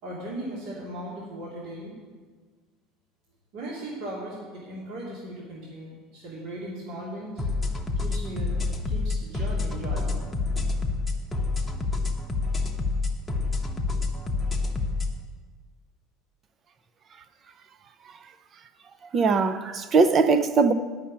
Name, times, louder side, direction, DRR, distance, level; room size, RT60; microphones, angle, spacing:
voice 1, 0.0-2.0 3.5-7.4 8.0-8.5 8.8-10.2, right 1 dB, 60° right, 2.7 m, -37 dB
sound 1, 7.4-15.1, left 3 dB, 5° left, 1.1 m, -28 dB
voice 2, 19.1-20.7, right 4 dB, 30° right, 0.6 m, -20 dB
10.5 x 5.8 x 8.7 m
cardioid pair, 145°, 0 cm